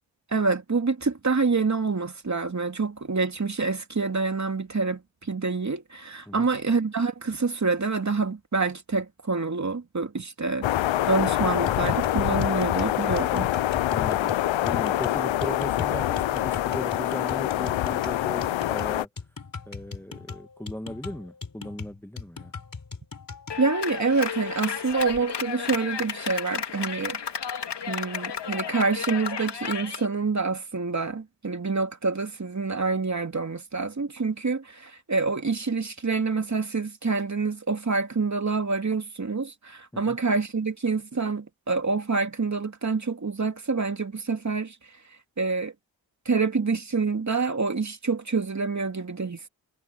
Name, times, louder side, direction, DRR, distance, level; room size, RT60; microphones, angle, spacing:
voice 1, 0.3-13.5 23.6-27.2 27.9-44.8 45.4-45.7 46.2-49.5, right 4 dB, 40° right, 2.8 m, -27 dB
sound 1, 10.6-19.1, left 14 dB, 85° left, 0.8 m, -25 dB
sound 2, 11.7-23.6, left 4 dB, 45° left, 4.6 m, -40 dB
voice 2, 13.9-14.3 14.6-19.1 19.7-22.5 39.9-40.2, left 1 dB, 5° left, 1.6 m, -37 dB
Clapping, 23.5-30.1, left 7 dB, 65° left, 2.8 m, -33 dB
supercardioid pair, 45°, 45 cm